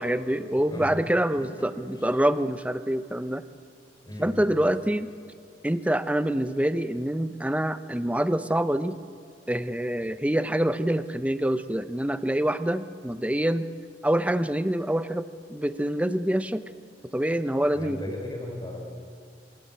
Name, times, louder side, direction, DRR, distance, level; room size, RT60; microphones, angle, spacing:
voice 1, 0.0-3.4 4.2-5.1 5.6-9.0 9.5-13.7 14.0-16.6 17.1-18.0, right 1 dB, 10° right, 12 dB, 0.7 m, -26 dB
voice 2, 0.6-1.0 1.9-2.1 4.0-4.5 17.7-18.8, left 1 dB, 25° left, 2 dB, 4.4 m, -37 dB
27.0 x 21.0 x 8.9 m, 2.2 s
head